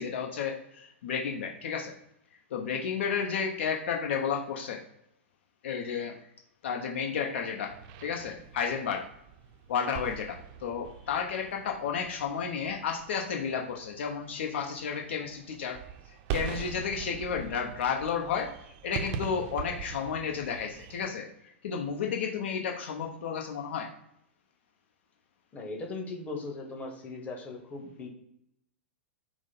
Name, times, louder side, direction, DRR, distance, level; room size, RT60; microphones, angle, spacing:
voice 1, 0.0-1.9 2.5-4.8 5.6-6.2 6.6-7.7 8.0-9.1 9.7-15.8 16.3-18.5 18.8-21.3 21.6-23.9, left 6 dB, 65° left, 2 dB, 0.8 m, -32 dB
sound 1, 7.7-21.1, right 7 dB, 45° right, 0.5 m, -42 dB
voice 2, 25.5-28.1, left 3 dB, 20° left, 1 dB, 1.2 m, -38 dB
6.0 x 2.1 x 4.1 m, 0.78 s
hypercardioid pair, 110°, 7 cm